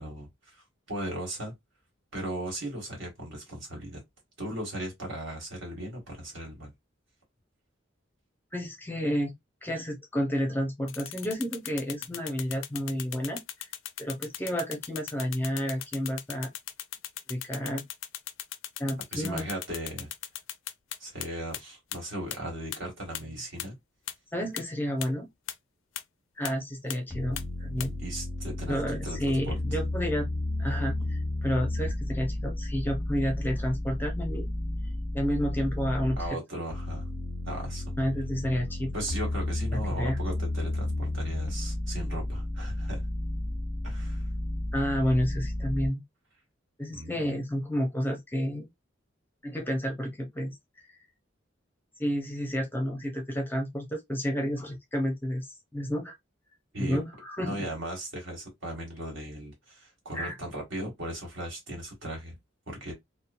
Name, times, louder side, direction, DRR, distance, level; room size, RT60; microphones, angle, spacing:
voice 1, 0.0-1.5 2.1-4.0 4.4-6.7 19.1-20.1 21.0-23.8 28.0-29.2 29.4-29.5 36.2-37.1 37.4-37.9 38.9-43.0 43.8-44.2 46.9-47.3 56.7-57.0 57.4-62.3 62.7-62.9, right 1 dB, 65° right, 1.6 m, -37 dB
voice 2, 8.5-9.3 9.6-13.4 14.0-16.5 17.3-17.8 18.8-19.5 24.3-25.3 26.4-27.9 28.7-30.3 30.6-34.5 35.1-36.2 38.0-38.9 39.7-40.2 44.7-46.0 46.8-48.7 49.4-50.5 52.0-56.2 56.8-57.7 60.1-60.4, equal, 10° left, 0.6 m, -30 dB
sound 1, 10.9-21.3 21.5-21.6 21.9-22.0 22.3-22.4 22.7-22.8 23.1-23.2 23.6-23.7 24.1-24.2 24.6-24.7 25.0-25.1 25.5-25.6 26.0-26.1 26.4-26.5 26.9-27.0 27.4-27.5 27.8-27.9, left 12 dB, 75° left, 0.4 m, -37 dB
sound 2, 27.1-36.3 36.7-45.9, left 1 dB, 10° right, 1.1 m, -32 dB
2.9 x 2.1 x 2.5 m
head